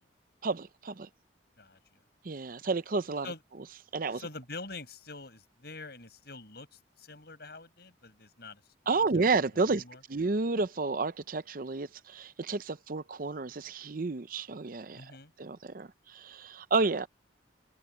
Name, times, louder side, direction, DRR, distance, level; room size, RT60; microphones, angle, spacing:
voice 1, 0.4-1.1 2.2-3.3 3.9-4.2 8.9-9.8 10.1-15.1 15.4-17.1, right 3 dB, 50° right, 0.6 m, -31 dB
voice 2, 4.1-9.1 9.6-10.0 14.9-15.3, left 3 dB, 60° left, 7.9 m, -45 dB
head